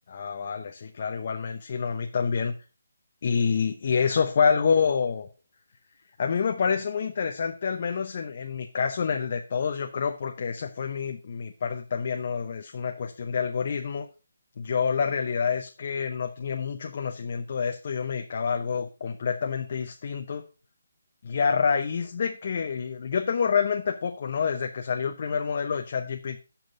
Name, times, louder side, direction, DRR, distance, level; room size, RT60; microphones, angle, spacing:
voice 1, 0.1-2.5 3.2-5.3 6.2-14.1 14.6-20.4 21.2-26.4, left 6 dB, 45° left, 4 dB, 0.8 m, -27 dB
7.9 x 5.9 x 5.1 m, 0.32 s
figure-of-eight pair, 155°, 0 cm